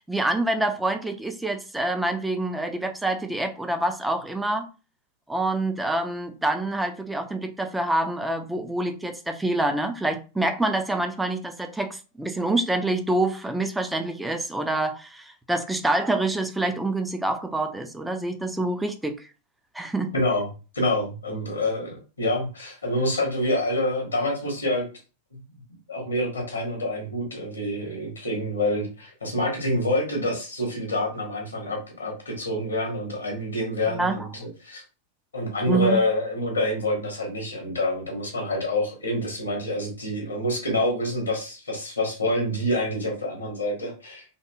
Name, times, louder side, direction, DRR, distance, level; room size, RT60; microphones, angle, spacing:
voice 1, 0.1-4.7 5.3-19.3 19.7-20.1 33.9-34.3 35.7-36.0, right 2 dB, 5° right, 0.4 m, -26 dB
voice 2, 20.1-20.5 20.7-24.9 25.3-25.4 25.9-34.8 35.3-44.2, left 1 dB, 75° left, 0.8 m, -27 dB
2.8 x 2.6 x 2.2 m
figure-of-eight pair, 90°, 0 cm